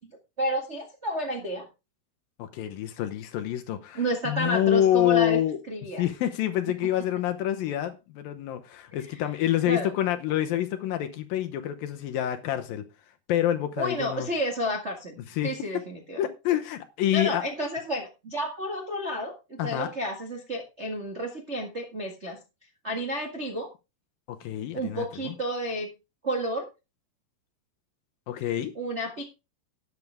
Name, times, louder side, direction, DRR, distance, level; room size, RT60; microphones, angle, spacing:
voice 1, 0.4-1.7 3.9-5.4 5.7-6.0 9.7-9.9 13.8-16.2 17.1-22.4 22.8-23.7 24.7-25.9 26.2-26.6 28.7-29.2, equal, 50° right, 0.7 m, -31 dB
voice 2, 2.4-5.6 6.0-12.8 13.3-14.3 15.3-15.5 16.2-17.5 19.6-19.9 24.3-25.3 28.3-28.7, left 12 dB, 75° left, 2.4 m, -27 dB
12.5 x 9.6 x 3.5 m
omnidirectional pair, 4.7 m